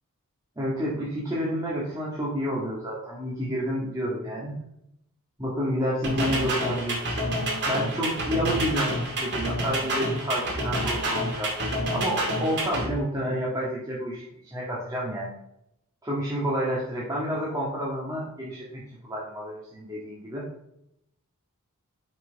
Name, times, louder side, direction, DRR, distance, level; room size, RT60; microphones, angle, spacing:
voice 1, 0.6-4.6 5.4-7.2 7.7-11.5 11.9-15.3 16.0-20.5, equal, 15° right, -6 dB, 1.7 m, -29 dB
sound 1, 6.0-12.9, right 1 dB, 50° right, 2.2 m, -28 dB
6.1 x 5.9 x 4.1 m, 0.80 s
head